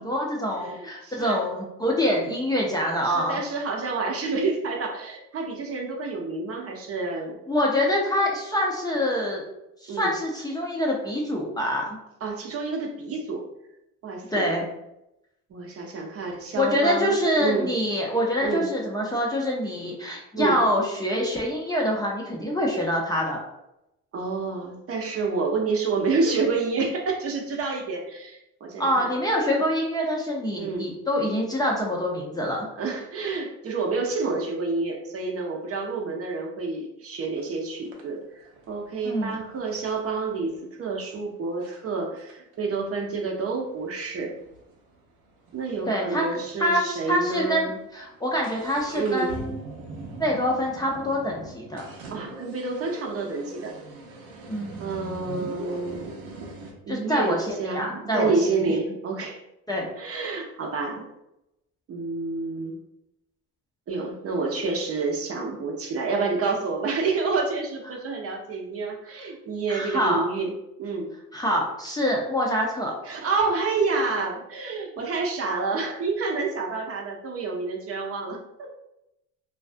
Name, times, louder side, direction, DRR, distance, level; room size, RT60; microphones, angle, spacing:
voice 1, 0.0-3.4 7.5-9.4 9.8-12.0 14.3-14.7 16.6-23.4 28.8-32.7 39.0-39.4 45.9-46.2 46.6-49.6 50.2-51.8 54.5-54.8 56.9-58.8 59.7-59.9 69.7-70.2 71.3-72.9, equal, 10° left, -2 dB, 0.4 m, -25 dB
voice 2, 0.6-1.4 2.2-2.4 3.0-7.4 9.9-10.1 12.2-13.4 14.0-14.5 15.5-17.7 18.4-18.7 20.3-20.6 24.1-29.1 30.6-30.9 32.8-44.3 45.5-47.8 48.9-49.4 52.1-53.7 54.8-56.1 56.9-59.4 60.0-61.1 61.9-62.8 63.9-70.5 70.8-71.1 73.0-78.7, right 4 dB, 45° right, 0 dB, 0.6 m, -29 dB
sound 1, 37.4-37.5 37.9-40.6 41.2-41.3 41.6-41.8 42.2-45.8 46.1-46.2 46.4-46.5 47.1-47.3 47.6-56.7, right 3 dB, 80° right, 0.7 m, -41 dB
2.4 x 2.3 x 2.5 m, 0.86 s
supercardioid pair, 90°, 34 cm